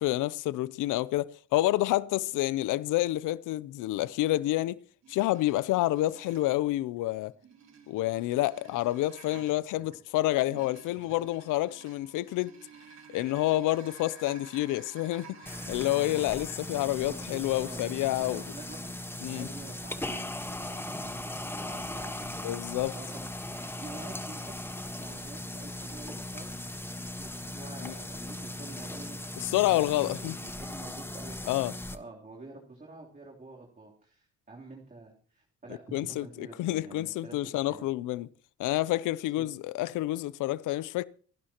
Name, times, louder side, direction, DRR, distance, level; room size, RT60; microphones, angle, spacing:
voice 1, 0.0-4.8 5.1-7.3 7.9-12.6 13.1-15.4 15.7-18.4 19.2-19.5 22.4-22.9 27.8-27.9 29.4-30.3 31.5-31.7 35.9-36.2 36.6-38.3 38.6-41.0, left 16 dB, 90° left, 0.6 m, -28 dB
sound 1, 5.0-6.6 7.3-16.6, right 5 dB, 60° right, 3.5 m, -52 dB
sound 2, 15.5-32.0, left 1 dB, 10° left, 1.3 m, -38 dB
voice 2, 17.0-17.8 18.2-18.9 19.3-23.3 23.8-26.5 27.0-31.5 31.9-37.9 39.3-39.5, right 3 dB, 25° right, 3.3 m, -48 dB
27.5 x 11.5 x 2.9 m
cardioid pair, 90°, 30 cm